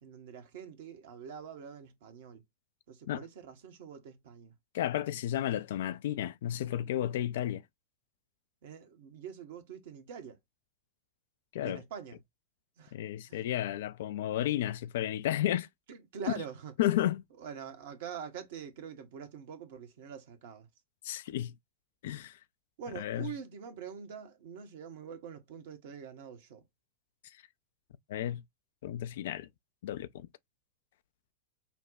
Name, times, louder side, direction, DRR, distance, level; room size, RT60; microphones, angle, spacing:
voice 1, 0.0-2.4 2.9-4.5 8.6-10.4 11.6-12.2 12.8-13.0 13.3-13.4 15.9-16.7 17.4-20.7 22.8-26.7, right 7 dB, 55° right, 1.0 m, -45 dB
voice 2, 4.7-7.6 11.5-11.8 12.9-15.7 16.8-17.2 21.0-21.5 22.0-22.4 23.0-23.3 28.1-28.4 28.8-29.5 29.8-30.3, left 12 dB, 55° left, 0.4 m, -32 dB
5.7 x 2.2 x 2.6 m
figure-of-eight pair, 90°, 0 cm